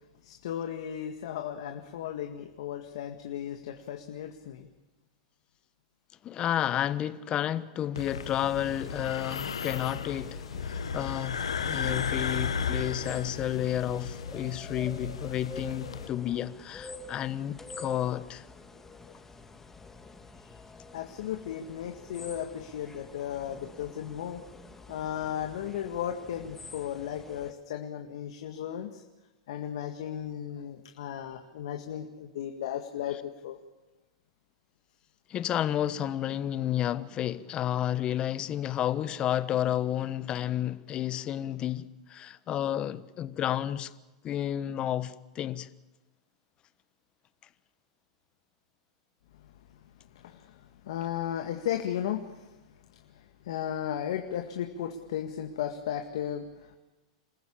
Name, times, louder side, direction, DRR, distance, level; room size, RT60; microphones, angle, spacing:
voice 1, 0.2-4.7 19.0-19.1 20.4-20.5 20.9-24.4 24.9-29.0 29.5-33.6 49.4-49.5 50.1-52.6 52.9-56.8, left 10 dB, 70° left, 1.9 m, -35 dB
voice 2, 6.2-18.4 35.3-43.9 44.2-45.7, left 11 dB, 35° left, 1.2 m, -31 dB
sound 1, 8.0-16.1, left 6 dB, 85° left, 1.3 m, -35 dB
sound 2, 8.1-27.5, left 3 dB, 10° left, 2.6 m, -48 dB
28.0 x 15.0 x 8.7 m
hypercardioid pair, 105°, 3 cm